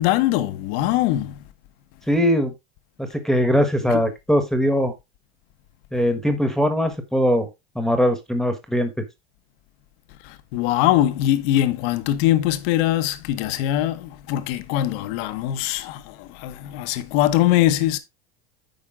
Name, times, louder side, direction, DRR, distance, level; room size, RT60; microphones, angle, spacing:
voice 1, 0.0-1.4 3.9-4.0 10.2-18.0, left 13 dB, 70° left, 1.1 m, -22 dB
voice 2, 2.1-2.5 3.0-4.9 5.9-7.5 7.7-9.0, equal, ahead, 1.3 m, -21 dB
9.2 x 5.1 x 3.6 m
supercardioid pair, 115°, 31 cm